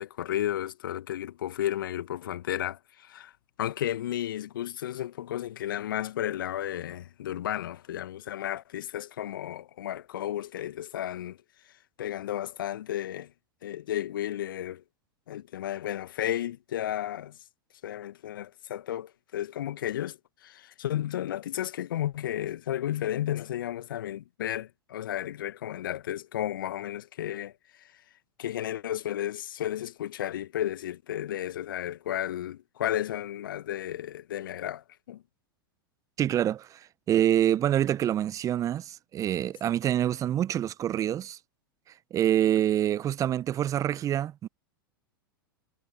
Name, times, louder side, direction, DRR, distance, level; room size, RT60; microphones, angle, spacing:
voice 1, 0.0-3.3 3.6-11.4 12.0-13.3 13.6-14.8 15.3-17.4 17.8-27.5 27.8-27.9 28.4-35.2, left 12 dB, 65° left, 1.5 m, -33 dB
voice 2, 36.2-36.8 37.1-41.4 42.1-44.5, right 11 dB, 25° right, 0.8 m, -26 dB
figure-of-eight pair, 95°, 12 cm